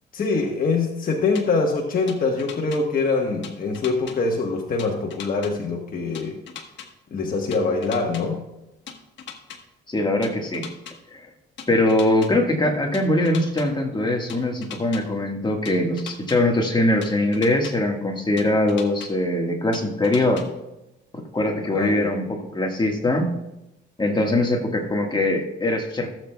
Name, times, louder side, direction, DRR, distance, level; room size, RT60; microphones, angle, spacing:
voice 1, 0.1-6.3 7.1-8.4 21.7-22.1, left 4 dB, 45° left, 0 dB, 1.3 m, -24 dB
sound 1, 1.3-1.4 2.1-2.8 3.4-4.2 4.8-5.5 6.1-6.9 7.5-8.2 8.9-9.6 10.2-10.9 11.6-12.3 12.9-13.7 14.3-15.0 15.6-16.4 17.0-17.7 18.4-19.1 19.7-20.4, left 8 dB, 70° left, 1.3 m, -38 dB
voice 2, 9.9-10.7 11.1-11.3 11.7-20.4 21.1-23.3 24.0-26.1, left 1 dB, 20° left, 2 dB, 1.6 m, -22 dB
16.5 x 7.6 x 2.3 m, 0.93 s
cardioid pair, 90°, 20 cm